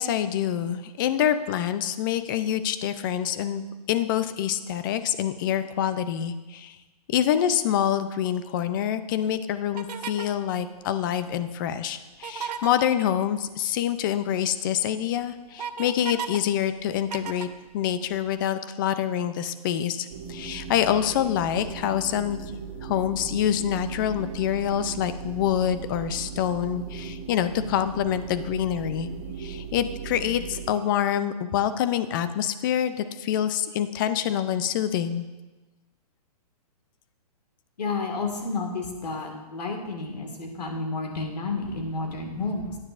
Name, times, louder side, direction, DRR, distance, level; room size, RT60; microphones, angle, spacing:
voice 1, 0.0-6.8 7.1-17.5 17.7-22.4 22.8-29.1 29.4-35.3, left 10 dB, 30° left, 12 dB, 0.5 m, -26 dB
sound 1, 9.8-10.4 12.1-12.9 14.5-14.6 15.0-16.4 16.7-18.3, right 7 dB, 80° right, 0.8 m, -35 dB
sound 2, 20.1-30.7, right 6 dB, 30° right, 1.1 m, -38 dB
voice 2, 37.8-42.8, left 3 dB, 90° left, 2 dB, 1.9 m, -31 dB
11.5 x 9.6 x 2.5 m, 1.2 s
hypercardioid pair, 150°, 20 cm